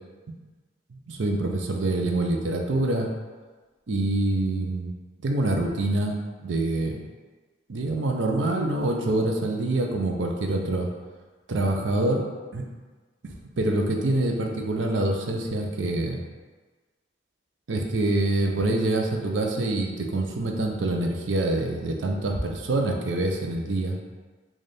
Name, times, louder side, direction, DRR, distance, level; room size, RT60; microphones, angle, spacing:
voice 1, 0.9-3.1 3.9-4.9 5.2-6.2 6.4-7.0 7.7-10.9 11.5-12.2 12.5-12.6 13.2-16.2 17.7-24.0, right 2 dB, 80° right, 2 dB, 0.5 m, -25 dB
4.1 x 2.4 x 3.3 m, 1.3 s
head